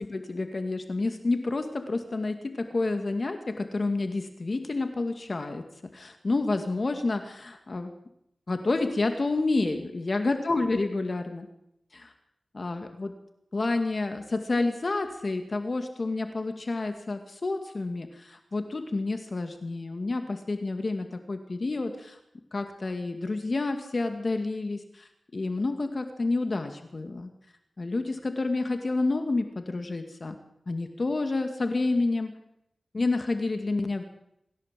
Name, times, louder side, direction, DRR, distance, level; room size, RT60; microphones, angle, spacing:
voice 1, 0.0-5.6 5.9-7.9 8.5-11.5 11.9-12.1 12.5-13.1 13.5-22.2 22.5-27.3 27.8-30.4 30.7-32.4 32.9-34.0, left 3 dB, 50° left, 6 dB, 2.1 m, -29 dB
26.0 x 15.5 x 7.6 m, 0.80 s
wide cardioid pair, 60°, 0 cm